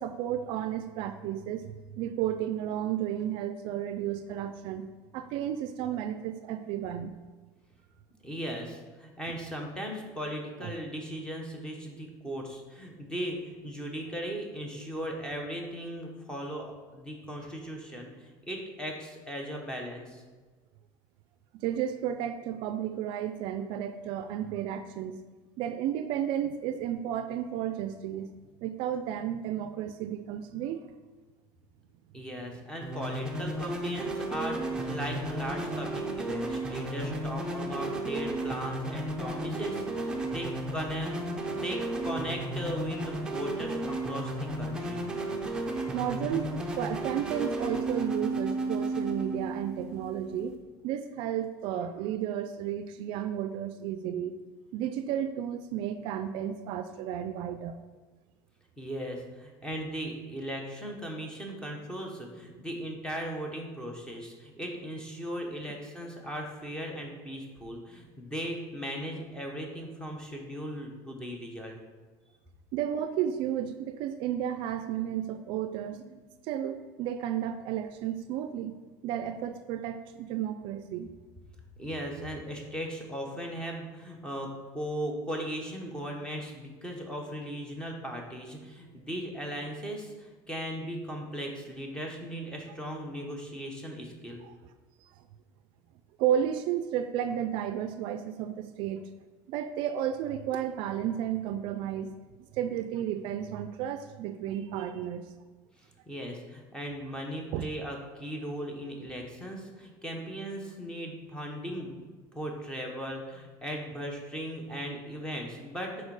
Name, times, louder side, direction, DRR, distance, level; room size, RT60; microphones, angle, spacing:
voice 1, 0.0-4.9 5.1-7.2 10.6-10.7 21.5-25.2 25.6-28.3 28.6-30.9 45.9-50.6 50.8-54.4 54.7-57.8 72.7-78.8 79.0-81.1 96.2-99.1 99.5-102.2 102.5-105.2 107.5-107.7, right 10 dB, 60° right, 9 dB, 0.4 m, -32 dB
voice 2, 8.2-20.2 32.1-45.0 58.8-71.8 81.8-84.5 84.7-94.4 105.8-116.1, equal, 10° left, 1 dB, 1.0 m, -38 dB
sound 1, 32.8-50.6, right 2 dB, 10° right, 0.7 m, -33 dB
6.4 x 4.4 x 4.8 m, 1.3 s
cardioid pair, 155°, 10 cm